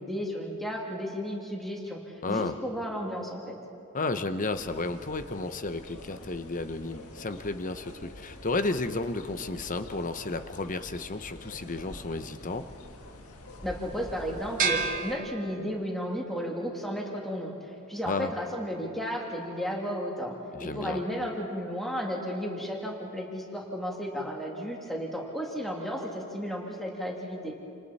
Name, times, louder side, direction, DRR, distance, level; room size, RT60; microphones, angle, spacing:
voice 1, 0.0-3.6 13.6-17.5 17.9-27.5, equal, ahead, -2 dB, 2.9 m, -33 dB
voice 2, 2.2-2.6 3.9-12.6 18.0-18.3 20.5-21.0, left 3 dB, 35° left, 10 dB, 0.9 m, -32 dB
sound 1, 4.5-15.2, left 1 dB, 80° left, 1.8 m, -46 dB
sound 2, 14.6-16.1, right 5 dB, 35° right, 2.2 m, -30 dB
29.0 x 28.0 x 4.3 m, 2.7 s
head